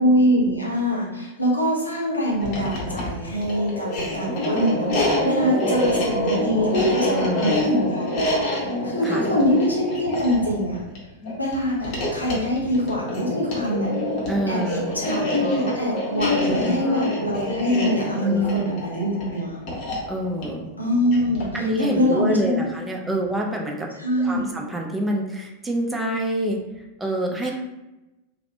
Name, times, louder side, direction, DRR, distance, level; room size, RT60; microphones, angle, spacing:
voice 1, 0.0-10.8 11.4-13.9 14.5-14.6 14.9-19.6 20.8-22.6 23.0-23.2 24.0-24.4 27.4-27.5, equal, 85° left, -4 dB, 0.6 m, -24 dB
sound 1, 2.4-21.6, left 1 dB, 45° left, 0.7 m, -26 dB
voice 2, 5.1-5.9 7.1-7.5 9.0-9.2 14.3-14.9 16.4-17.0 18.2-18.7 20.1-20.7 21.5-23.9 24.2-26.6 27.0-27.5, right 1 dB, 10° right, 0 dB, 0.4 m, -27 dB
2.4 x 2.0 x 2.6 m, 0.98 s
figure-of-eight pair, 90°, 0 cm